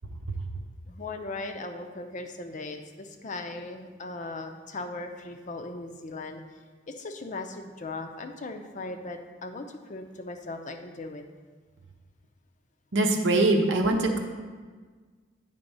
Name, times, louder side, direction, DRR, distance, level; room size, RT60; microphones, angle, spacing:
voice 1, 0.9-6.4 6.9-11.2, left 2 dB, 40° left, 6 dB, 0.6 m, -38 dB
voice 2, 12.9-14.2, right 2 dB, 70° right, 2 dB, 0.7 m, -22 dB
9.0 x 3.5 x 5.4 m, 1.5 s
head